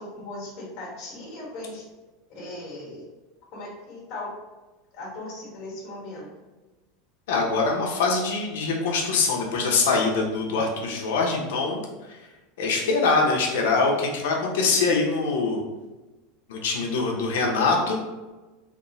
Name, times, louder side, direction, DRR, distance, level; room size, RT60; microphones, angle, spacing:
voice 1, 0.0-1.8 2.3-3.1 3.5-4.3 4.9-6.3, left 2 dB, 40° left, -5 dB, 1.4 m, -38 dB
voice 2, 7.3-11.8 12.1-12.2 12.6-15.6 16.5-18.0, left 4 dB, 80° left, 0 dB, 0.7 m, -23 dB
3.5 x 2.0 x 4.0 m, 1.2 s
supercardioid pair, 175°, 0 cm